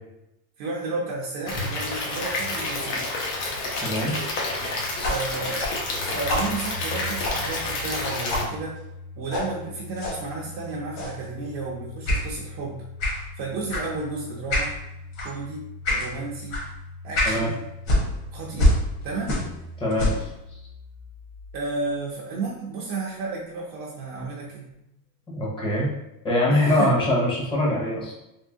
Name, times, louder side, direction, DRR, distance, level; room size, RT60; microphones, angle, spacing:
voice 1, 0.6-3.0 5.0-5.7 6.0-8.8 9.2-12.8 13.1-14.8 15.2-16.7 17.0-17.7 18.3-18.8 19.0-19.4 21.5-24.7 26.5-26.9, right 3 dB, 40° right, -3 dB, 0.5 m, -32 dB
Stream / Liquid, 1.5-8.4, left 2 dB, 80° left, 1.1 m, -29 dB
voice 2, 3.8-4.2 17.3-17.5 19.8-20.3 25.3-25.9 26.2-28.1, left 1 dB, 10° left, -4 dB, 0.6 m, -23 dB
sound 1, 5.0-8.0 8.3-8.5 9.3-9.5 10.0-10.2 11.0-11.2 12.1-12.3 13.0-13.2 13.7-13.9 14.5-14.7 15.1-15.3 15.8-16.1 16.5-16.7 17.1-17.4 17.8-19.6 19.9-20.3, left 1 dB, 60° left, 1.3 m, -26 dB
Domestic sounds home sounds, 6.4-23.3, left 3 dB, 70° right, 0.9 m, -42 dB
3.5 x 2.7 x 2.7 m, 0.88 s
supercardioid pair, 155°, 46 cm